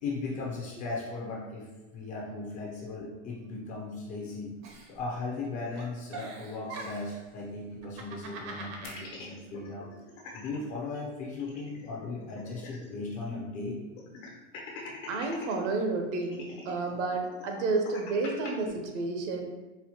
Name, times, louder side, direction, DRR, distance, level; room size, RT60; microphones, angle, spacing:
voice 1, 0.0-4.5 4.9-9.9 10.3-13.8, left 3 dB, 25° left, -2 dB, 0.3 m, -37 dB
Giggle, 4.6-5.5 5.8-7.2 7.8-9.1, right 3 dB, 40° right, 0.5 m, -43 dB
sound 1, 8.8-10.6 10.9-11.0 11.3-13.1 13.4-13.5 14.0-15.6 16.2-18.5, left 4 dB, 85° left, 1.1 m, -45 dB
voice 2, 15.1-19.5, right 3 dB, 70° right, 3 dB, 0.8 m, -31 dB
4.3 x 2.1 x 2.8 m, 1.1 s
supercardioid pair, 145°, 36 cm